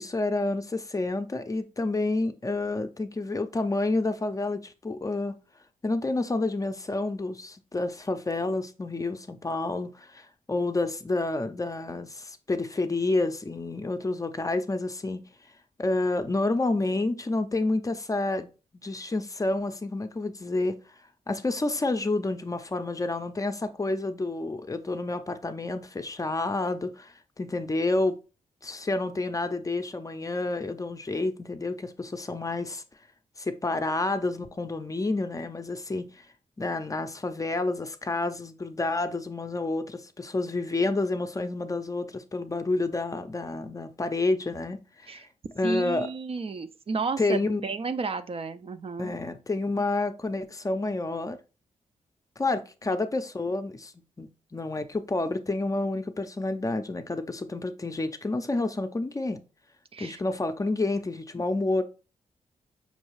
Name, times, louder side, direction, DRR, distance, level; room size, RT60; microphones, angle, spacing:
voice 1, 0.0-5.3 5.8-15.2 15.8-18.5 18.8-20.8 21.3-28.2 28.6-32.8 33.4-36.2 36.6-45.2 45.6-46.1 47.2-47.6 49.0-51.4 52.4-53.9 54.2-59.4 60.0-61.8, left 2 dB, 25° left, 0.5 m, -29 dB
voice 2, 45.6-49.2 52.9-53.0 59.9-60.2, right 4 dB, 40° right, 0.4 m, -32 dB
5.3 x 2.3 x 3.1 m
cardioid pair, 55°, 14 cm